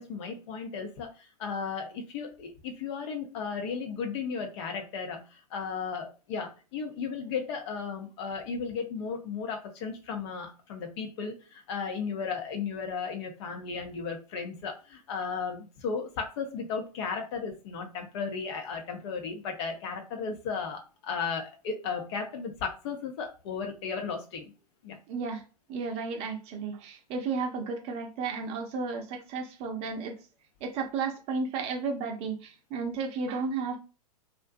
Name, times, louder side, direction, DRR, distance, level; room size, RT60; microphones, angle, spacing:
voice 1, 0.0-24.5 24.8-25.0, left 5 dB, 45° left, 4 dB, 0.7 m, -35 dB
voice 2, 25.1-25.4 25.7-30.1 30.6-33.8, right 4 dB, 30° right, 2 dB, 0.6 m, -33 dB
2.5 x 2.2 x 2.5 m, 0.34 s
figure-of-eight pair, 105°, 20 cm